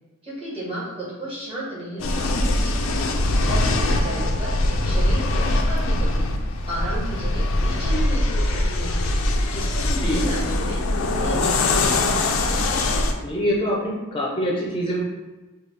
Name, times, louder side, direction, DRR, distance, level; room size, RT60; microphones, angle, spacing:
voice 1, 0.2-2.6 3.3-4.6 4.8-6.3 6.7-9.0 9.4-10.9 11.2-12.1, right 1 dB, 25° right, -7 dB, 1.5 m, -33 dB
sound 1, 2.0-13.1, left 2 dB, 85° left, 0.5 m, -22 dB
voice 2, 9.8-10.2 13.2-15.0, equal, 25° left, -3 dB, 0.6 m, -25 dB
5.1 x 2.4 x 3.3 m, 1.2 s
head